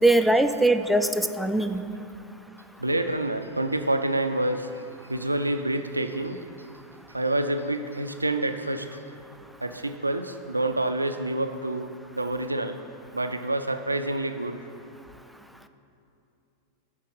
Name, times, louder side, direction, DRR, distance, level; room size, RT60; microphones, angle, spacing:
voice 1, 0.0-1.8, right 1 dB, ahead, 7 dB, 0.4 m, -21 dB
voice 2, 2.8-4.8 5.1-6.4 7.1-9.0 9.6-12.8 13.1-14.6, right 1 dB, 85° right, 7 dB, 0.4 m, -27 dB
11.0 x 4.4 x 5.5 m, 2.7 s
figure-of-eight pair, 90°, 0 cm